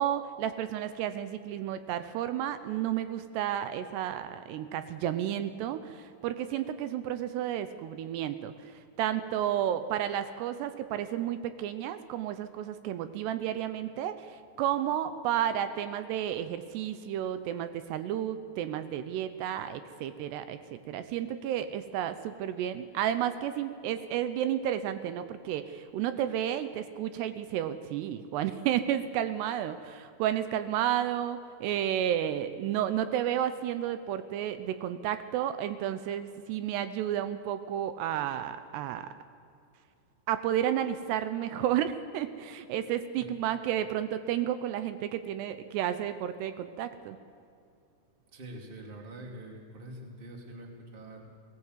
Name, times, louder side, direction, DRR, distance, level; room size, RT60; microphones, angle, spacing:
voice 1, 0.0-39.1 40.3-47.2, right 10 dB, 80° right, 11 dB, 2.8 m, -32 dB
voice 2, 48.3-51.2, right 1 dB, 15° right, 1 dB, 1.9 m, -45 dB
20.0 x 19.0 x 8.0 m, 2.5 s
omnidirectional pair, 5.0 m